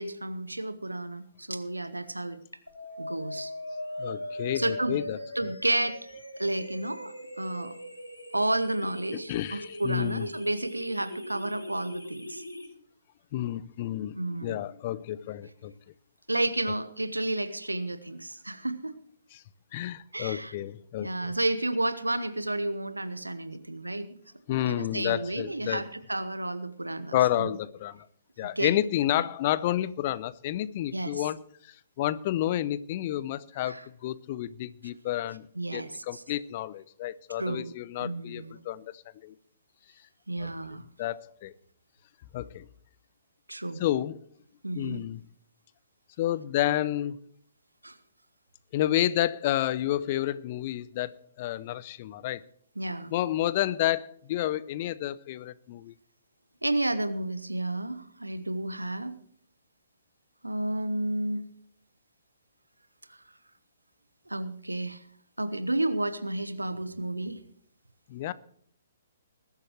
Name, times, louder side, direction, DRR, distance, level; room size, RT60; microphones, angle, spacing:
voice 1, 0.0-2.4 3.0-3.5 4.5-5.0 5.3-6.0 6.4-7.8 8.3-12.4 14.2-14.6 16.3-18.9 20.1-20.5 21.0-24.2 24.7-27.5 28.4-28.7 29.1-29.2 30.9-31.2 33.7-33.9 35.6-36.2 37.4-37.7 38.0-38.6 40.3-40.8 43.5-43.8 44.6-45.0 47.8-48.0 52.8-53.1 56.6-59.1 60.4-61.5 63.1-63.2 64.3-65.0 65.4-67.4, right 1 dB, 80° right, 1.1 m, -31 dB
sound 1, 2.7-12.7, left 1 dB, 85° left, 2.9 m, -40 dB
voice 2, 4.0-5.2 9.3-10.3 13.3-14.2 14.4-15.7 19.3-19.4 19.7-21.3 24.5-25.8 27.1-28.1 28.4-35.5 35.7-39.3 40.4-40.5 41.0-41.5 42.3-42.7 43.8-44.2 44.7-45.2 46.2-47.2 48.7-52.4 53.1-55.9 68.1-68.3, left 13 dB, 35° left, 0.6 m, -30 dB
20.5 x 12.0 x 3.1 m
figure-of-eight pair, 125°, 0 cm